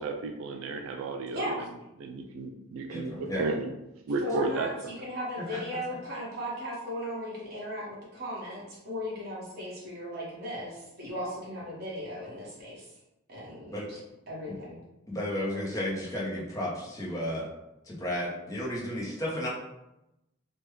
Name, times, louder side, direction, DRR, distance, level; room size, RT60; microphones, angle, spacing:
voice 1, 0.0-1.6 2.0-3.7 4.1-4.7, right 3 dB, 80° right, 3 dB, 0.3 m, -33 dB
voice 2, 2.9-3.4 5.4-5.6 13.7-13.8 15.1-17.5 17.8-19.5, left 1 dB, 15° left, -5 dB, 0.7 m, -33 dB
voice 3, 4.2-4.7 5.0-12.9 13.3-14.0 14.3-14.8, equal, 50° right, -6 dB, 1.2 m, -37 dB
3.3 x 2.2 x 3.1 m, 0.91 s
head